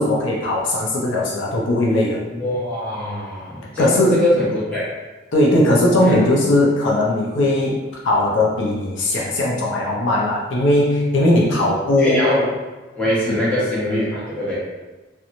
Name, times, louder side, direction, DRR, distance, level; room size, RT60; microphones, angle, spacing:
voice 1, 0.0-2.2 3.8-4.3 5.3-12.2 13.3-13.4, left 1 dB, 75° left, -3 dB, 0.5 m, -18 dB
voice 2, 2.3-4.9 6.0-6.2 12.0-12.5 13.0-14.6, left 1 dB, 5° left, -10 dB, 0.9 m, -22 dB
2.9 x 2.1 x 2.5 m, 1.2 s
head